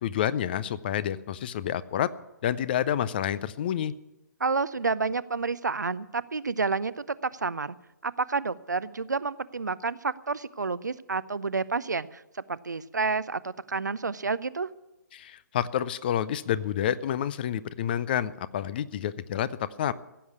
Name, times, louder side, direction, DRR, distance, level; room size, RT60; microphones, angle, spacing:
voice 1, 0.0-2.1 2.4-3.9 15.1-19.9, left 10 dB, 30° left, 18 dB, 0.5 m, -29 dB
voice 2, 4.4-7.8 8.0-12.2 12.5-14.7, right 4 dB, 70° right, 17 dB, 0.6 m, -29 dB
15.5 x 7.9 x 8.3 m, 0.95 s
figure-of-eight pair, 130°, 10 cm